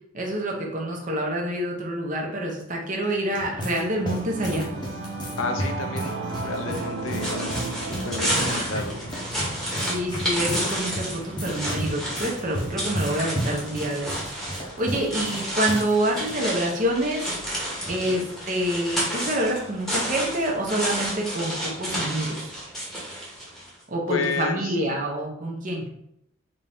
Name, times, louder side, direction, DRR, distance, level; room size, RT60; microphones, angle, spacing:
voice 1, 0.1-4.7 8.4-8.8 9.8-17.3 17.9-22.4 23.9-25.9, right 1 dB, 40° right, 0 dB, 0.7 m, -27 dB
sound 1, 3.0-15.9 16.2-16.3 17.1-17.4, equal, 20° left, 0.7 m, -34 dB
Singing / Musical instrument, 3.1-12.8, right 2 dB, 80° right, 0.6 m, -36 dB
voice 2, 5.4-6.1 6.4-7.6 8.0-9.0 18.0-18.3 24.1-24.8, left 4 dB, 80° left, 6 dB, 0.5 m, -31 dB
sound 2, 6.5-23.7, equal, ahead, 1.0 m, -31 dB
3.5 x 2.7 x 3.4 m, 0.75 s
head